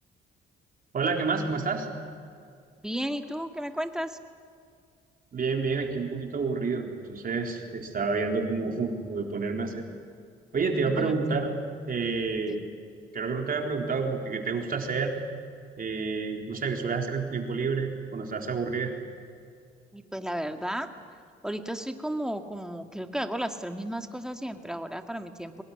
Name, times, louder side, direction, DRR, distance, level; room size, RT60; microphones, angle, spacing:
voice 1, 0.9-1.9 5.3-9.8 10.5-11.5 11.9-12.6 13.1-15.1 15.8-18.9, right 4 dB, 45° right, 2 dB, 4.0 m, -29 dB
voice 2, 2.8-4.2 10.8-11.4 12.5-12.6 19.9-20.9 21.4-25.6, equal, 5° right, 6 dB, 2.0 m, -34 dB
23.5 x 20.5 x 10.0 m, 2.3 s
cardioid pair, 90°, 20 cm